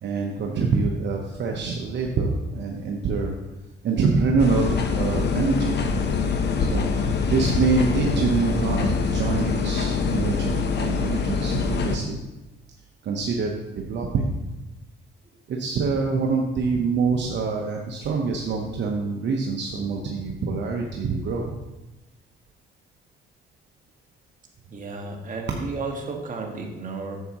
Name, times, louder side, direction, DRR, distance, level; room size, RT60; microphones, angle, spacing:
voice 1, 0.0-3.3 3.8-6.1 6.6-12.2 13.0-14.5 15.5-21.5, right 4 dB, 65° right, 0 dB, 1.0 m, -25 dB
sound 1, 4.4-12.0, left 5 dB, 60° left, 0.9 m, -24 dB
voice 2, 24.7-27.2, right 3 dB, 40° right, 1 dB, 1.6 m, -33 dB
9.1 x 7.3 x 3.0 m, 1.0 s
cardioid pair, 90°, 20 cm